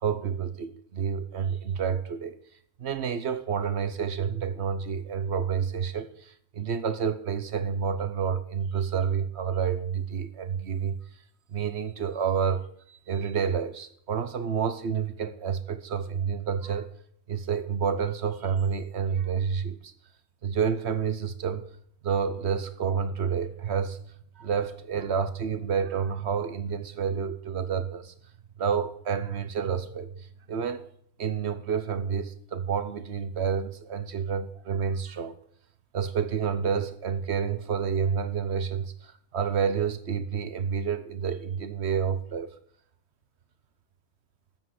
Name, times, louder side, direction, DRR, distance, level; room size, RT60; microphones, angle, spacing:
voice 1, 0.0-2.4 2.8-11.0 11.5-16.9 17.3-19.9 20.4-21.7 22.0-24.0 24.4-28.1 28.6-30.9 31.2-35.3 35.9-42.5, right 7 dB, 60° right, 1.1 m, -29 dB
13.5 x 7.7 x 6.4 m
omnidirectional pair, 1.3 m